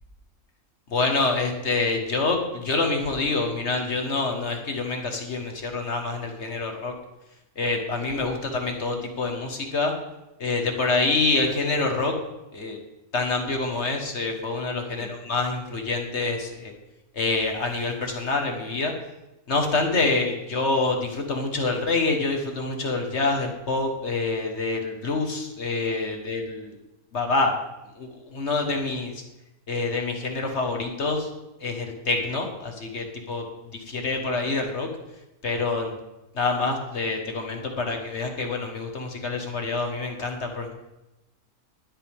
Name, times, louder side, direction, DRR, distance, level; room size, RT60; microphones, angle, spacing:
voice 1, 0.9-6.9 7.5-9.9 10.4-12.1 12.5-12.8 13.1-16.7 17.1-18.9 19.5-26.7 27.1-27.5 27.9-29.2 29.7-31.3 31.6-33.4 33.7-34.9 35.4-35.9 36.3-40.8, left 3 dB, 50° left, 3 dB, 1.7 m, -26 dB
21.0 x 8.4 x 3.6 m, 0.97 s
omnidirectional pair, 1.6 m